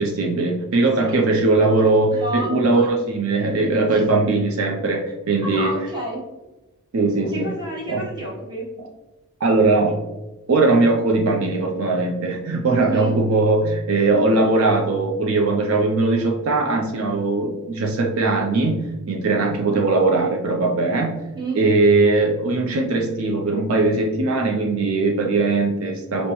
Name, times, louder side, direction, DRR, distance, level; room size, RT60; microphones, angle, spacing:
voice 1, 0.0-5.7 6.9-7.5 7.9-8.0 9.4-10.0 10.5-21.2 21.5-26.3, right 3 dB, 65° right, 0 dB, 0.5 m, -20 dB
voice 2, 0.7-2.8 3.9-4.0 5.4-6.2 7.3-8.7 12.7-13.2 21.3-21.6, right 2 dB, 20° right, -5 dB, 1.0 m, -30 dB
5.2 x 2.1 x 2.9 m, 1.1 s
head